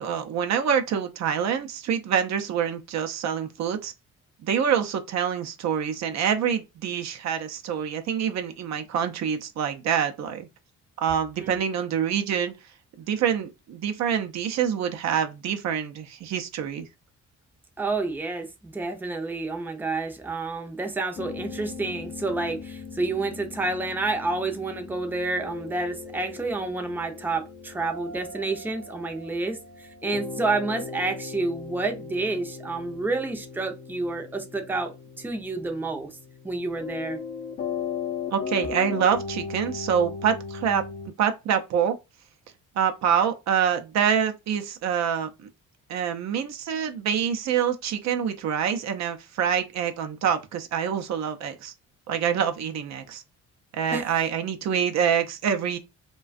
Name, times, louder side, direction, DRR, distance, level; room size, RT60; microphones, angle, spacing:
voice 1, 0.0-3.9 4.4-10.5 11.0-12.5 13.1-16.9 38.3-40.8 41.2-42.0 42.8-45.3 45.9-51.7 52.1-53.2 53.7-55.8, right 8 dB, 65° right, 0.5 m, -26 dB
voice 2, 17.8-36.1 36.4-37.2 53.9-54.1, right 3 dB, 5° right, 0.5 m, -29 dB
sound 1, 21.2-41.1, left 5 dB, 55° left, 0.6 m, -38 dB
2.4 x 2.2 x 2.4 m
cardioid pair, 90°, 30 cm